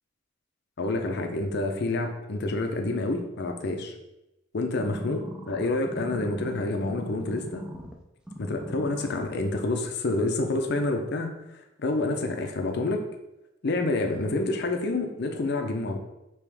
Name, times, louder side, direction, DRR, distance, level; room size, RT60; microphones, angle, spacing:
voice 1, 0.8-3.9 4.5-7.6 8.4-13.0 13.6-16.0, left 2 dB, 55° left, 4 dB, 0.6 m, -28 dB
sound 1, 4.8-7.9 8.3-9.3 9.8-9.9, right 1 dB, 5° right, 0.4 m, -39 dB
4.8 x 3.0 x 3.4 m, 0.91 s
head